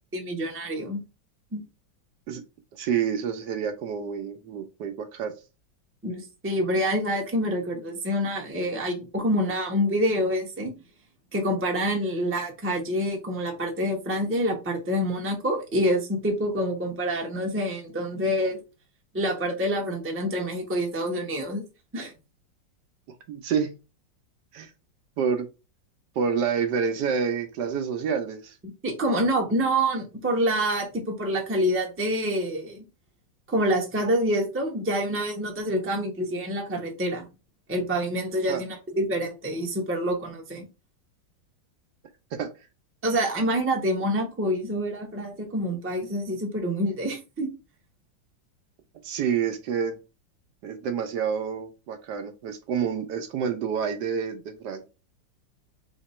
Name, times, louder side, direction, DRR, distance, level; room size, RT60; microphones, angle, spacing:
voice 1, 0.1-1.0 1.5-1.6 6.0-10.7 11.3-18.6 19.1-21.6 21.9-22.1 28.8-32.8 33.5-37.3 37.7-40.7 43.0-47.5, equal, 10° right, 1 dB, 0.6 m, -27 dB
voice 2, 2.7-5.3 23.3-23.7 24.5-24.7 25.2-25.5 26.2-28.6 38.5-38.6 42.3-42.5 49.0-50.0 50.6-54.9, right 7 dB, 70° right, 7 dB, 1.1 m, -28 dB
3.6 x 2.9 x 4.2 m, 0.29 s
omnidirectional pair, 2.0 m